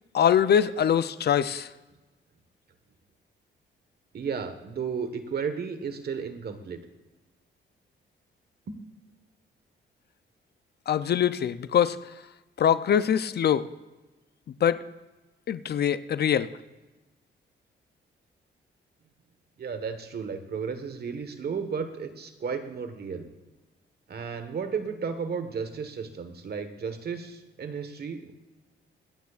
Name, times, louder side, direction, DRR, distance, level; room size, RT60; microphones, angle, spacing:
voice 1, 0.1-1.7 10.9-12.0 12.6-13.7 14.6-14.8 15.5-16.5, left 9 dB, 55° left, 14 dB, 0.5 m, -23 dB
voice 2, 4.1-6.8 8.7-8.8 19.6-23.3 24.1-28.3, right 6 dB, 55° right, 8 dB, 1.4 m, -33 dB
25.5 x 9.4 x 2.5 m, 1.1 s
cardioid pair, 85°, 20 cm